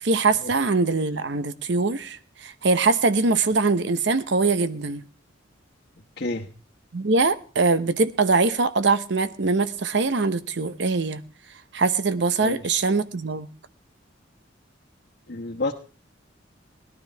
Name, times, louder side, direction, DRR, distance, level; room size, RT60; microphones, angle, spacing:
voice 1, 0.0-5.0 6.9-11.2 11.7-13.5, right 3 dB, 65° right, 12 dB, 0.8 m, -22 dB
voice 2, 12.4-12.8 15.3-15.7, left 2 dB, 55° left, -2 dB, 1.1 m, -29 dB
18.0 x 12.0 x 3.4 m, 0.36 s
head